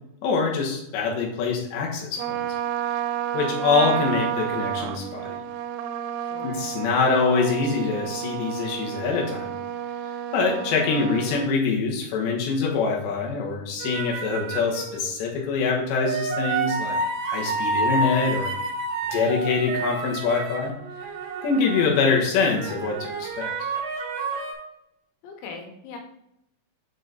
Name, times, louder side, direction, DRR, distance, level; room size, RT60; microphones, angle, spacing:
voice 1, 0.2-2.4 3.3-5.4 6.4-9.6 10.3-17.0 17.3-18.5 19.1-20.7 21.4-23.5, left 4 dB, 70° left, -1 dB, 3.2 m, -24 dB
Trumpet, 2.2-11.5, right 10 dB, 90° right, 3.2 m, -30 dB
voice 2, 6.2-6.6 25.2-26.0, left 4 dB, 85° left, 3 dB, 3.9 m, -40 dB
sound 1, 13.8-15.0 16.0-22.1 22.5-24.5, right 3 dB, 65° right, 2.3 m, -29 dB
7.7 x 4.7 x 4.0 m, 0.82 s
omnidirectional pair, 5.8 m